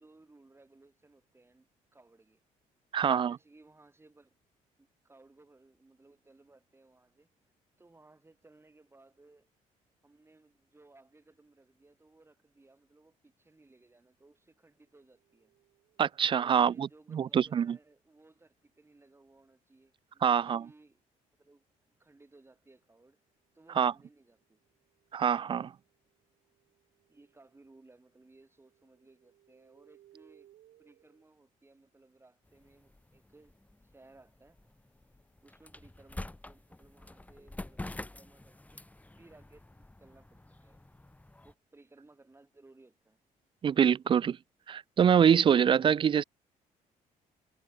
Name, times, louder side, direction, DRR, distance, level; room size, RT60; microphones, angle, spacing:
voice 1, 0.0-2.4 3.0-4.3 4.8-7.3 7.8-9.5 10.0-15.6 16.4-21.0 21.4-23.2 23.5-24.6 27.1-30.5 30.8-34.6 35.4-38.8 39.1-40.8 41.4-43.2, right 2 dB, 15° right, 4.6 m, -61 dB
voice 2, 2.9-3.4 16.0-17.8 20.2-20.6 23.8-23.9 25.1-25.7 43.6-44.4 44.7-46.2, right 8 dB, 35° right, 0.3 m, -25 dB
sound 1, 14.9-16.3 24.1-27.8 28.0-31.2, right 13 dB, 75° right, 6.8 m, -66 dB
sound 2, 32.5-41.5, left 2 dB, 10° left, 1.8 m, -47 dB
cardioid pair, 90°, 15 cm